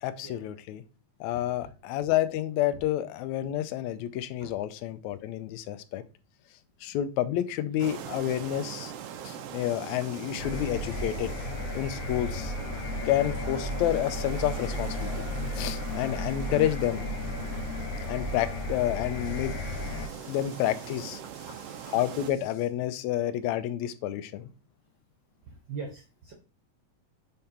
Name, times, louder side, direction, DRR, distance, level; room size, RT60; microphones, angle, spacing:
voice 1, 0.0-0.8 1.2-6.0 6.8-8.9 9.2-11.3 11.8-12.5 13.1-15.3 15.6-17.1 18.1-21.2 21.9-24.5, left 12 dB, 80° left, 1.8 m, -29 dB
sound 1, 7.8-22.3, right 9 dB, 80° right, 1.4 m, -42 dB
sound 2, 10.4-20.1, left 2 dB, 65° left, 1.9 m, -34 dB
voice 2, 25.4-26.3, right 5 dB, 60° right, 1.3 m, -41 dB
6.6 x 3.7 x 4.3 m
omnidirectional pair, 3.4 m